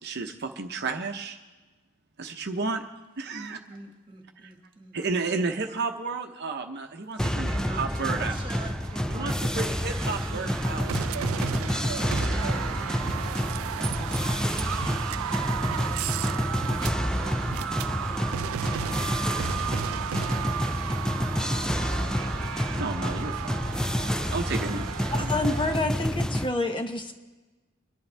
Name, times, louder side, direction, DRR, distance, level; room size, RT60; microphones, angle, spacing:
voice 1, 0.0-1.4 2.2-2.8 3.2-3.6 4.9-8.3 9.1-10.9 12.0-12.6 12.9-13.2 13.8-13.9 22.7-23.9 24.3-24.8 25.1-25.3, right 4 dB, 55° right, 4 dB, 0.8 m, -32 dB
voice 2, 3.3-5.6 7.3-12.7 13.6-19.4 21.2-21.7 24.6-24.9, right 2 dB, 25° right, 2 dB, 1.8 m, -47 dB
sound 1, 7.2-26.5, left 1 dB, 5° left, 0.3 m, -29 dB
sound 2, 7.2-25.8, right 9 dB, 90° right, 0.3 m, -34 dB
voice 3, 25.3-27.1, left 2 dB, 25° left, 5 dB, 0.8 m, -28 dB
23.5 x 11.0 x 3.4 m, 1.2 s
head